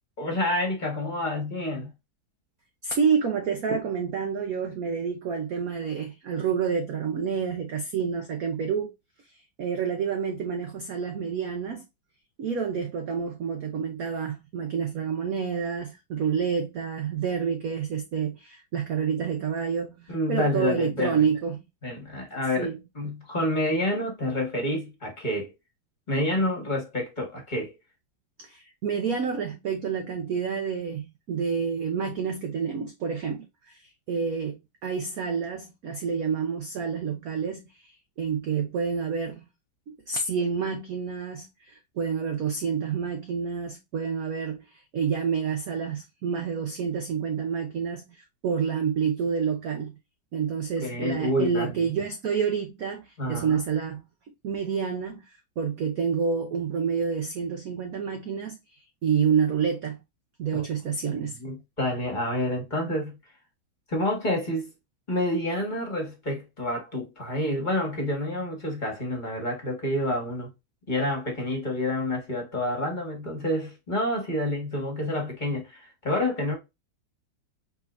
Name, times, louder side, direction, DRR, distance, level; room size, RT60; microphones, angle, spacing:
voice 1, 0.2-1.9 20.1-21.2 21.8-25.5 26.1-27.7 50.8-51.7 53.2-53.6 60.5-60.6 61.4-63.2 63.9-64.7 65.1-70.5 70.9-76.5, left 1 dB, 25° left, 1.4 m, -28 dB
voice 2, 2.8-8.9 9.6-11.9 12.4-21.6 22.6-22.8 28.4-37.9 38.2-39.4 39.9-49.9 50.3-54.0 54.4-60.0 60.4-61.4, right 6 dB, 65° right, 0.9 m, -28 dB
4.6 x 3.7 x 2.5 m
omnidirectional pair, 2.2 m